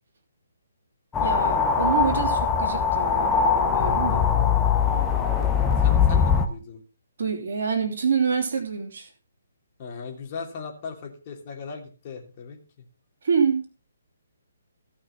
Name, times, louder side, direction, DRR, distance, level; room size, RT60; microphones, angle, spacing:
sound 1, 1.1-6.5, left 6 dB, 10° left, 1.3 m, -21 dB
voice 1, 1.2-4.3 7.2-9.1 13.2-13.6, right 6 dB, 50° right, 3 dB, 2.9 m, -26 dB
voice 2, 4.8-6.8 9.8-12.6, left 5 dB, 35° left, 2 dB, 3.0 m, -38 dB
15.5 x 6.1 x 5.5 m, 0.37 s
figure-of-eight pair, 135°, 0 cm